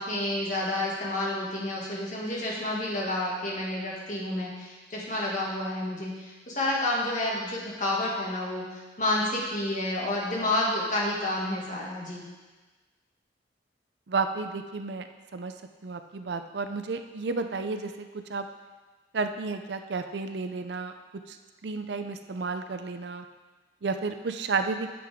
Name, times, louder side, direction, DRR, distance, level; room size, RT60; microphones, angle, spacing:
voice 1, 0.0-12.2, left 1 dB, 45° left, -4 dB, 2.0 m, -30 dB
voice 2, 14.1-15.1 15.3-15.5 15.8-18.5 19.1-20.9 21.3-21.4 21.6-23.3 23.8-24.9, right 4 dB, 60° right, 8 dB, 0.5 m, -32 dB
9.4 x 7.7 x 3.6 m, 1.3 s
head